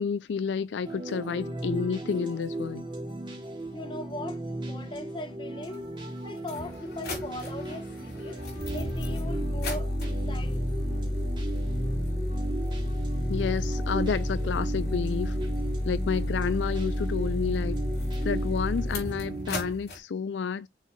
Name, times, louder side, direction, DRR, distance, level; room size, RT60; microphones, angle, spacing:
voice 1, 0.0-2.8 13.3-15.4 15.8-17.8 18.2-20.7, left 6 dB, 80° left, 0.4 m, -30 dB
sound 1, 0.8-19.7, right 2 dB, 25° right, 2.5 m, -36 dB
voice 2, 3.7-4.4 4.7-5.8 6.2-8.4 8.7-10.7, left 1 dB, 30° left, 1.0 m, -39 dB
sound 2, 5.7-5.8 6.4-20.0, left 1 dB, 60° left, 3.4 m, -31 dB
6.5 x 4.1 x 3.6 m
head